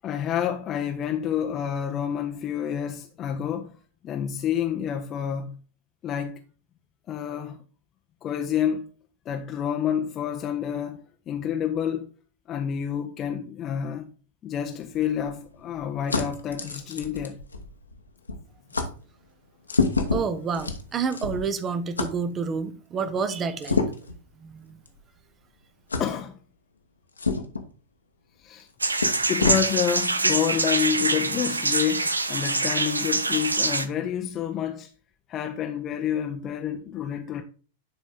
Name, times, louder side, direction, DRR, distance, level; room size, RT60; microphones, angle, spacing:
voice 1, 0.0-5.6 6.0-6.4 7.1-7.6 8.2-8.9 9.3-12.1 12.5-14.1 14.4-17.4 26.0-26.4 28.4-28.7 29.3-34.9 35.3-37.4, left 9 dB, 30° left, 0.7 m, -28 dB
sound 1, 14.5-18.0 18.3-18.4 18.7-18.9 19.6-21.5 22.0-22.1 23.6-24.2 24.9-25.0 25.9-26.1 27.2-27.6 28.6-28.7 29.0-29.6, left 4 dB, 80° left, 1.1 m, -28 dB
voice 2, 20.1-23.8 24.4-24.8, right 5 dB, 25° right, 0.8 m, -29 dB
sound 2, 28.8-33.8, right 3 dB, 80° right, 0.6 m, -25 dB
10.5 x 4.1 x 3.7 m
figure-of-eight pair, 95°, 0 cm